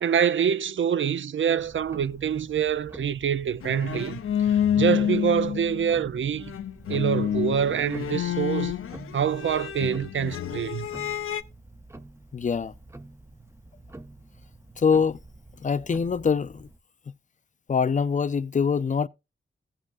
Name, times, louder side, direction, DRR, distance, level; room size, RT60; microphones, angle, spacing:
voice 1, 0.0-6.5 6.9-8.7 9.1-10.9, right 8 dB, 65° right, 0.5 m, -26 dB
Tick-tock, 1.6-16.8, right 2 dB, 15° right, 0.6 m, -47 dB
sound 1, 3.6-6.1 6.4-11.4, left 9 dB, 90° left, 0.6 m, -28 dB
voice 2, 12.3-12.7 14.8-15.2 15.6-16.7 17.7-19.1, left 6 dB, 35° left, 0.4 m, -24 dB
15.5 x 7.5 x 2.5 m
wide cardioid pair, 125°, 21 cm